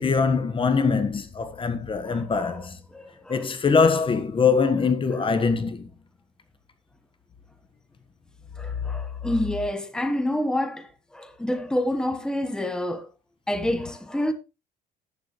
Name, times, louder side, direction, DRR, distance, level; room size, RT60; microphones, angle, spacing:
voice 1, 0.0-2.8 3.3-5.9, left 5 dB, 30° left, 1.3 m, -23 dB
voice 2, 2.0-2.6 2.9-3.4 5.1-5.2 8.5-13.1 13.5-14.3, left 1 dB, 5° left, 1.3 m, -28 dB
11.0 x 9.4 x 3.1 m
cardioid pair, 110°, 17 cm